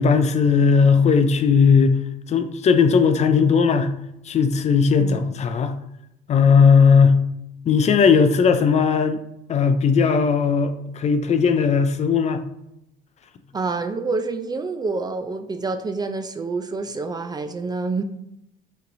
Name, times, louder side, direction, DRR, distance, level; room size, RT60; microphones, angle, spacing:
voice 1, 0.0-2.0 2.3-3.9 4.3-5.7 6.3-7.2 7.7-9.2 9.5-12.4, left 5 dB, 40° left, 9 dB, 0.5 m, -17 dB
voice 2, 13.5-18.0, right 3 dB, 25° right, 8 dB, 0.4 m, -27 dB
5.6 x 3.1 x 2.6 m, 0.83 s
cardioid pair, 110°, 17 cm